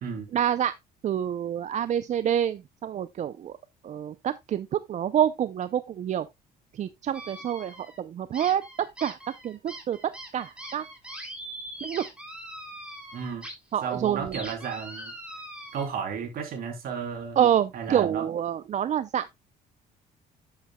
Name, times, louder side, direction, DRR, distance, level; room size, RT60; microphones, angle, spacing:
voice 1, 0.3-0.7 1.0-3.6 3.8-6.3 6.7-10.9 11.8-12.1 13.7-14.4 17.4-19.3, right 10 dB, 45° right, 0.5 m, -27 dB
sound 1, 7.1-8.0 8.3-13.5 13.9-15.9, right 1 dB, 5° right, 3.2 m, -42 dB
voice 2, 13.1-13.5 13.8-15.1 15.7-17.4 17.7-18.3, right 6 dB, 65° right, 3.2 m, -33 dB
11.0 x 8.1 x 2.2 m
cardioid pair, 110°, 17 cm